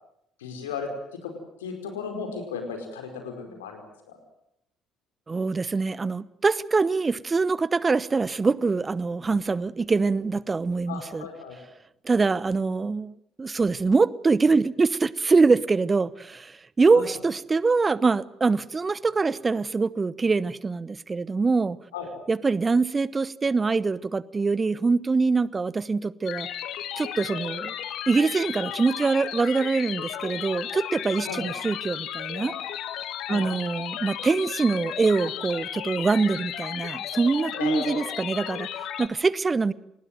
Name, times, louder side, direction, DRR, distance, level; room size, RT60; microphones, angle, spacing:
voice 1, 0.4-4.2 10.9-11.6 16.9-17.0 21.9-22.1 31.2-31.5 33.3-33.5 37.5-38.0, left 5 dB, 75° left, 4.9 m, -35 dB
voice 2, 5.3-11.2 12.0-21.8 22.3-26.5 27.0-27.7 28.1-32.6 33.3-39.7, right 4 dB, 25° right, 0.9 m, -24 dB
sound 1, 26.3-39.1, left 10 dB, 55° left, 1.9 m, -34 dB
26.0 x 20.5 x 7.8 m
figure-of-eight pair, 50°, 0 cm